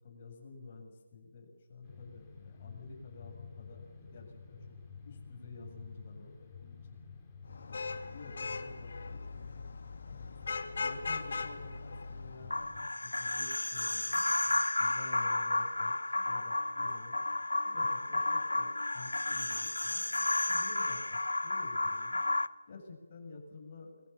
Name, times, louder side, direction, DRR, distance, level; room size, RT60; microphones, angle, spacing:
voice 1, 0.0-4.6 5.0-7.0 7.7-9.6 10.0-17.2 17.6-20.0 20.5-22.2 22.7-24.1, left 4 dB, 35° left, 1 dB, 7.5 m, -51 dB
sound 1, 1.8-12.9, left 5 dB, 15° left, 4.1 m, -51 dB
Vehicle horn car horn honking / Traffic noise roadway noise, 7.5-12.8, left 4 dB, 50° left, 2.6 m, -40 dB
sound 2, 12.5-22.5, left 2 dB, 75° left, 1.0 m, -32 dB
29.0 x 22.5 x 7.1 m, 1.2 s
figure-of-eight pair, 155°, 0 cm